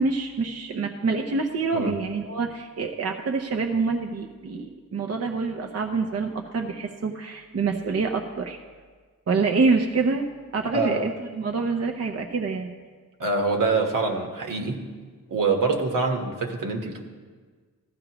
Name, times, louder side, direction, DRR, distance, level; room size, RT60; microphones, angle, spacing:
voice 1, 0.0-8.6 9.3-10.3 10.5-12.7, right 4 dB, 50° right, 3 dB, 0.7 m, -26 dB
voice 2, 10.7-11.1 13.2-14.8 15.3-17.0, right 3 dB, 80° right, 2 dB, 1.4 m, -25 dB
15.0 x 11.5 x 3.0 m, 1.5 s
wide cardioid pair, 140°, 32 cm